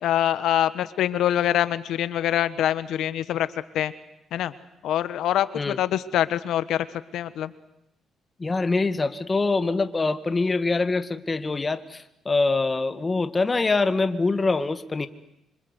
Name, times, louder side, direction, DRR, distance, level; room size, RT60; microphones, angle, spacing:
voice 1, 0.0-3.5 3.7-3.9 4.3-4.5 4.8-6.9 7.1-7.5, left 11 dB, 80° left, 14 dB, 1.4 m, -24 dB
voice 2, 8.4-15.1, left 3 dB, 25° left, 11 dB, 1.9 m, -24 dB
26.5 x 26.0 x 8.3 m, 0.82 s
cardioid pair, 90°, 0 cm